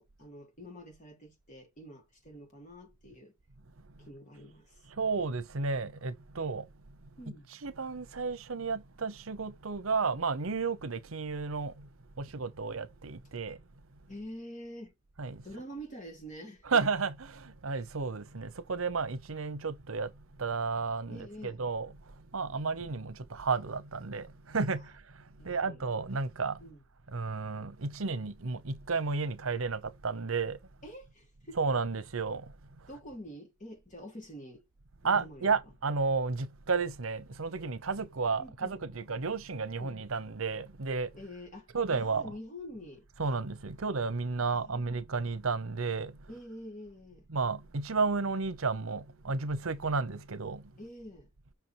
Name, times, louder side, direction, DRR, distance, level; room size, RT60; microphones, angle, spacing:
voice 1, 0.0-3.3 4.0-4.7 7.2-7.6 14.1-14.9 15.4-16.8 21.1-21.6 24.7-24.8 25.4-25.8 26.6-26.8 30.8-31.6 32.9-34.7 35.0-35.5 38.4-38.9 39.8-40.0 41.1-43.1 44.4-45.0 46.3-47.3 50.8-51.3, equal, 40° left, 2.8 m, -47 dB
voice 2, 5.0-6.6 7.6-11.9 12.2-13.6 15.2-15.4 16.6-20.1 20.4-21.9 22.3-24.8 25.4-26.6 27.1-30.6 31.6-32.4 35.0-41.1 41.7-42.3 43.2-46.1 47.3-50.6, right 4 dB, 80° right, 0.9 m, -32 dB
6.0 x 4.6 x 4.6 m
head